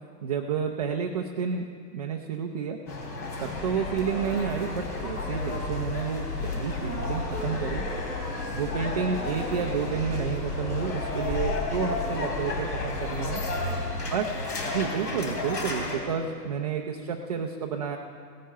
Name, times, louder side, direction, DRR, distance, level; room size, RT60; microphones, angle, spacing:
voice 1, 0.2-2.8 3.4-7.8 8.5-13.4 14.1-14.3 14.6-18.0, right 7 dB, 30° right, 1 dB, 0.3 m, -30 dB
sound 1, 2.9-16.0, left 2 dB, 85° left, 3.3 m, -32 dB
sound 2, 3.4-13.9, left 4 dB, 45° left, 3.3 m, -39 dB
17.0 x 10.0 x 5.5 m, 2.2 s
hypercardioid pair, 135°, 48 cm